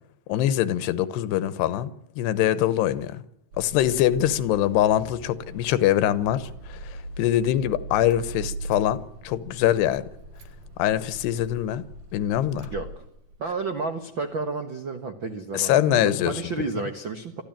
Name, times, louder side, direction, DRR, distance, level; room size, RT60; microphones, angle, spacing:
voice 1, 0.3-1.9 2.2-3.2 3.6-10.1 10.8-11.8 12.1-12.7 15.5-16.5, left 12 dB, 85° left, 3.2 m, -23 dB
Car / Engine starting, 3.5-13.6, right 2 dB, 55° right, 2.1 m, -40 dB
voice 2, 12.7-13.0 13.4-17.4, right 3 dB, 80° right, 1.0 m, -31 dB
23.0 x 14.5 x 9.0 m
omnidirectional pair, 4.7 m